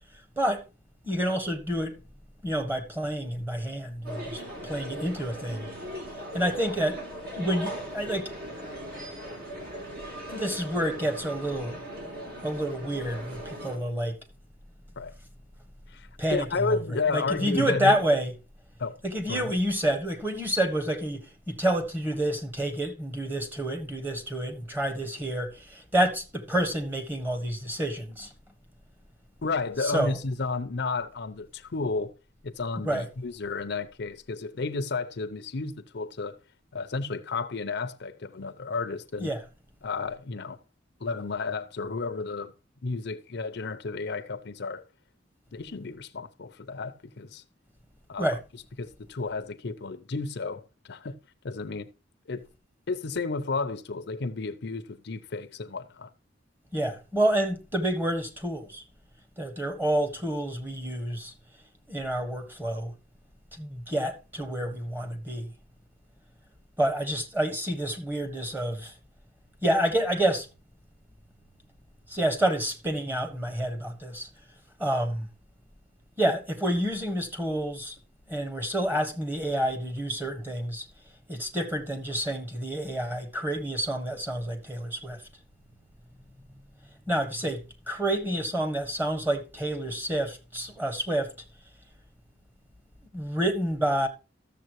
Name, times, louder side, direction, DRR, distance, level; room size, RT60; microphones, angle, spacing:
voice 1, 1.0-2.0 2.4-5.7 6.3-7.0 7.3-8.3 10.3-11.8 12.4-14.2 16.2-16.8 17.1-18.3 19.0-28.3 29.8-30.2 32.8-33.1 39.2-39.4 48.2-48.4 56.7-58.8 59.4-61.3 61.9-62.9 63.5-65.5 66.8-68.9 69.6-70.5 72.1-74.3 74.8-75.3 76.2-77.9 78.3-80.9 81.3-85.2 87.1-91.3 93.1-94.1, right 1 dB, 10° right, 1.4 m, -28 dB
sound 1, 4.0-13.8, equal, 55° right, 3.1 m, -39 dB
voice 2, 15.9-18.0 18.8-19.0 19.3-19.5 29.4-32.1 32.4-36.4 36.7-39.3 39.8-40.6 41.0-42.5 42.8-44.8 45.5-47.4 48.1-48.4 48.8-51.2 51.4-51.9 52.3-52.5 52.9-56.1, left 4 dB, 60° left, 0.7 m, -32 dB
13.5 x 7.1 x 3.0 m
head